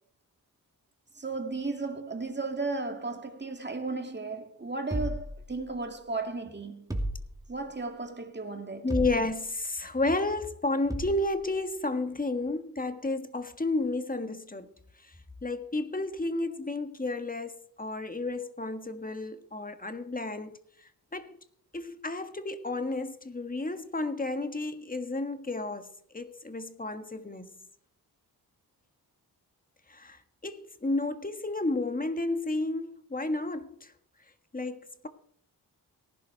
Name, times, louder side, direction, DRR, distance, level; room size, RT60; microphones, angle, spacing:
voice 1, 1.2-7.0 7.5-8.9, right 3 dB, 25° right, 2.3 m, -35 dB
sound 1, 4.9-6.0 6.9-7.8 8.9-9.6 10.9-11.4, right 1 dB, 10° right, 2.6 m, -35 dB
voice 2, 8.8-14.7 15.0-15.1 15.4-21.4 21.7-27.5 29.9-33.9 34.5-35.1, left 2 dB, 20° left, 1.5 m, -32 dB
18.0 x 11.5 x 4.5 m
cardioid pair, 70°, 40 cm